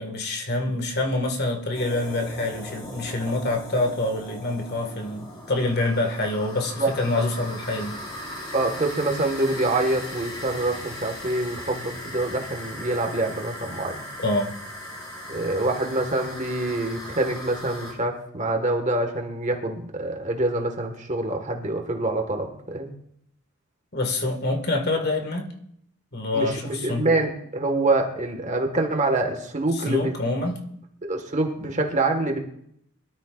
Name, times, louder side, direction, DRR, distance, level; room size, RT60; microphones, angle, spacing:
voice 1, 0.0-8.0 14.2-14.6 23.9-25.5 26.1-27.1 29.7-30.6, left 2 dB, 50° left, 3 dB, 1.9 m, -26 dB
sound 1, 1.7-17.9, left 1 dB, 20° left, 4.6 m, -38 dB
voice 2, 8.5-14.0 15.3-22.9 26.3-30.1 31.0-32.4, right 2 dB, 35° right, 4 dB, 1.7 m, -25 dB
23.0 x 13.0 x 2.5 m, 0.72 s
head